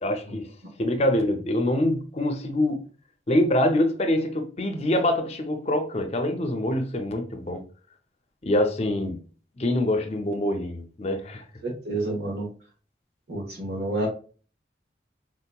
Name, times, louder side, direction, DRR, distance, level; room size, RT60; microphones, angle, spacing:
voice 1, 0.0-0.5 0.8-2.8 3.3-7.6 8.4-9.2 9.6-11.4, left 1 dB, 35° left, 0.5 m, -25 dB
voice 2, 11.6-12.5 13.3-14.1, right 2 dB, 70° right, 1.3 m, -29 dB
3.9 x 2.8 x 2.2 m
head